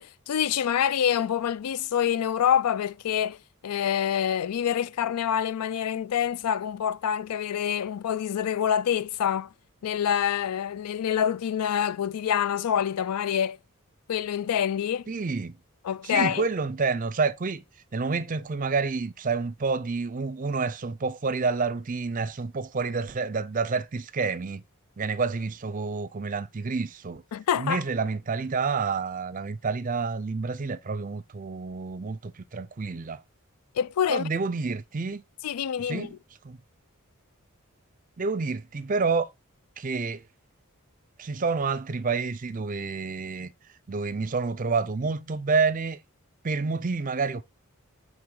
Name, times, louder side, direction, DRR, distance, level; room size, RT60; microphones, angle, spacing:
voice 1, 0.0-3.4 3.6-9.5 9.8-13.6 14.1-15.1 15.8-16.5 27.3-27.8 33.7-34.3 35.4-36.2, left 9 dB, 90° left, 0.4 m, -26 dB
voice 2, 15.1-15.5 16.0-17.6 17.9-24.6 25.0-27.2 27.6-33.2 34.1-35.2 35.8-36.1 36.4-36.6 38.2-39.3 39.8-40.2 41.2-43.5 43.9-46.0 46.4-47.4, right 4 dB, 35° right, 0.5 m, -28 dB
7.7 x 3.9 x 3.8 m
head